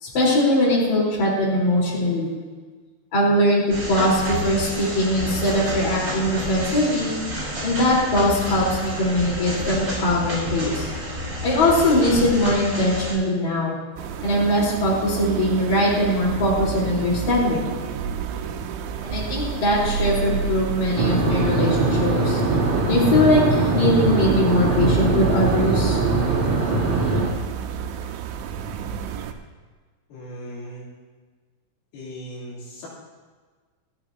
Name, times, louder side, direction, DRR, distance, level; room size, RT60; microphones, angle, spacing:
voice 1, 0.0-2.3 3.1-7.1 7.6-10.9 11.4-13.8 14.2-17.7 19.0-22.4 22.9-26.0, left 1 dB, 40° left, -6 dB, 5.1 m, -21 dB
sound 1, 3.7-13.1, equal, 20° right, 5.3 m, -30 dB
sound 2, 14.0-29.3, right 8 dB, 85° right, 3.1 m, -30 dB
sound 3, 21.0-27.3, right 2 dB, 45° right, 4.2 m, -21 dB
voice 2, 30.1-30.9 31.9-32.9, equal, 90° left, -7 dB, 5.8 m, -38 dB
27.5 x 9.3 x 2.9 m, 1.4 s
omnidirectional pair, 5.4 m